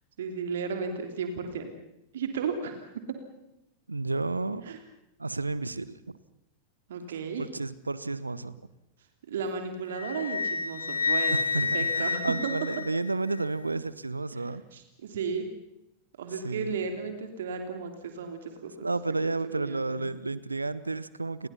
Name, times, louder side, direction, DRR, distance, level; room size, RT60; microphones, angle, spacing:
voice 1, 0.2-1.7 2.1-2.8 4.7-4.8 6.9-7.4 9.3-11.4 11.7-12.5 14.7-15.5 16.2-18.9 19.2-20.1, right 5 dB, 60° right, 6 dB, 3.1 m, -34 dB
voice 2, 3.9-4.8 5.2-6.2 7.4-8.6 11.3-14.6 16.3-16.7 18.8-21.5, right 3 dB, 80° right, 17 dB, 1.0 m, -31 dB
Wind instrument woodwind instrument, 9.9-13.4, left 4 dB, 80° left, 1.7 m, -29 dB
29.5 x 22.0 x 5.8 m, 0.89 s
figure-of-eight pair, 90°, 0 cm